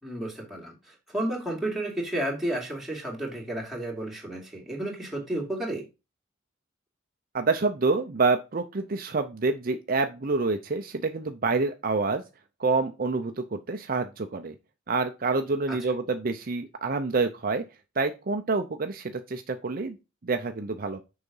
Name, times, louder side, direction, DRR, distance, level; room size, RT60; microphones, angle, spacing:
voice 1, 0.0-5.9 15.7-15.8, right 1 dB, ahead, 2.5 m, -32 dB
voice 2, 7.3-12.2 12.6-14.5 14.9-17.6 18.0-20.0 20.2-21.0, right 3 dB, 45° right, 0.6 m, -27 dB
6.8 x 4.8 x 5.4 m
head